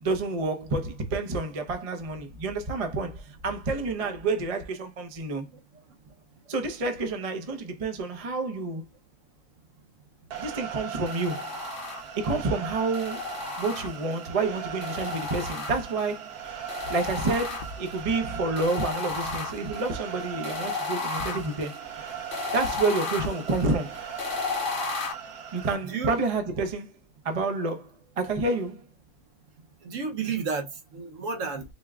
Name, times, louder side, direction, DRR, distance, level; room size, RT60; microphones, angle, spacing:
voice 1, 0.0-5.5 6.5-8.8 10.4-11.5 12.2-13.2 13.6-16.4 16.9-21.8 22.5-24.0 25.5-26.9 27.2-27.9 28.2-28.8, right 3 dB, 40° right, 0.5 m, -29 dB
sound 1, 10.3-25.7, right 8 dB, 75° right, 1.4 m, -39 dB
sound 2, 11.1-12.3 12.9-14.3 14.8-16.1 16.7-18.0 18.6-25.1, left 4 dB, 60° left, 0.5 m, -34 dB
voice 2, 29.8-31.6, right 5 dB, 60° right, 1.1 m, -32 dB
4.4 x 2.2 x 3.4 m
omnidirectional pair, 1.7 m